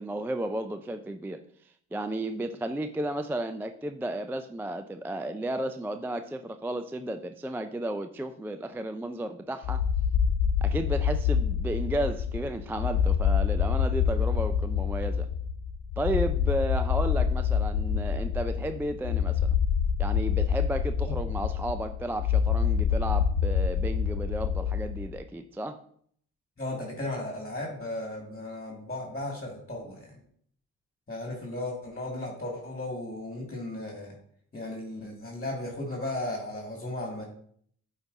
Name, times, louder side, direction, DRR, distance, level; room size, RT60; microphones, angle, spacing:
voice 1, 0.0-1.4 1.9-9.8 10.6-15.3 16.0-19.4 20.0-25.8, right 1 dB, 5° right, 0.3 m, -33 dB
sound 1, 9.6-25.2, left 7 dB, 70° left, 0.6 m, -26 dB
voice 2, 26.6-30.1 31.1-34.1 34.5-37.2, left 1 dB, 20° left, 2.0 m, -35 dB
8.5 x 4.1 x 2.7 m
supercardioid pair, 55°, 39 cm